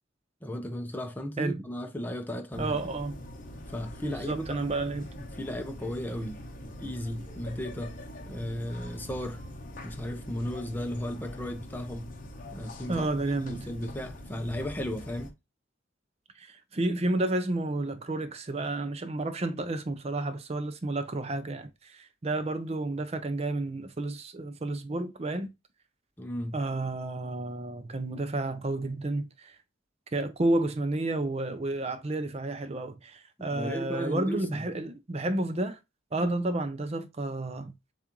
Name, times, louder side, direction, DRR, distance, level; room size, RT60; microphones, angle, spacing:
voice 1, 0.4-2.8 3.7-4.6 5.4-8.0 8.3-9.4 9.8-12.1 12.5-13.1 13.5-15.3 26.2-26.6 33.4-34.6, equal, 10° left, 0.6 m, -35 dB
sound 1, 2.5-15.3, left 1 dB, 45° left, 0.8 m, -43 dB
voice 2, 2.6-3.2 4.0-5.2 12.9-13.7 16.4-25.5 26.5-29.6 30.1-35.8 36.1-37.7, right 2 dB, 30° right, 0.5 m, -31 dB
7.2 x 2.5 x 2.9 m
head